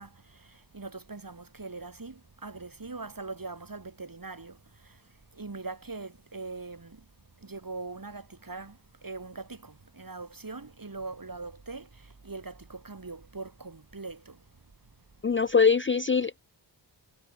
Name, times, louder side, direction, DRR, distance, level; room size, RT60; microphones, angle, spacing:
voice 1, 0.0-4.6 4.8-5.0 5.3-7.0 7.4-14.4, right 3 dB, 45° right, 6.1 m, -41 dB
voice 2, 15.2-16.4, left 5 dB, 25° left, 0.5 m, -23 dB
wide cardioid pair, 60°, 47 cm